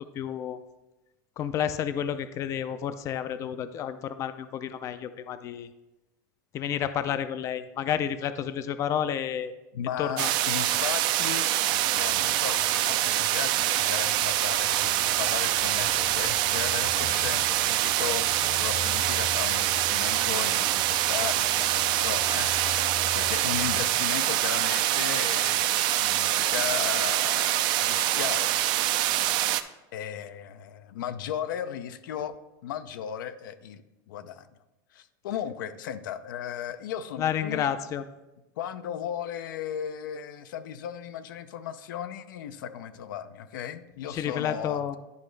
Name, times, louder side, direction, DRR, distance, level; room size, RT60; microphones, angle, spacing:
voice 1, 0.1-0.6 1.4-5.7 6.5-9.5 10.0-10.3 37.2-38.0 44.1-45.0, left 9 dB, 30° left, 12 dB, 0.4 m, -30 dB
voice 2, 9.7-28.6 29.9-32.4 32.6-34.5 34.9-37.7 38.6-44.8, left 9 dB, 90° left, 11 dB, 0.5 m, -36 dB
sound 1, 10.2-29.6, right 14 dB, 45° right, 0.4 m, -25 dB
sound 2, 11.9-23.8, left 5 dB, 50° left, 0.7 m, -43 dB
sound 3, 14.7-25.5, right 9 dB, 75° right, 0.7 m, -46 dB
10.5 x 5.0 x 3.2 m, 0.99 s
supercardioid pair, 140°, 10 cm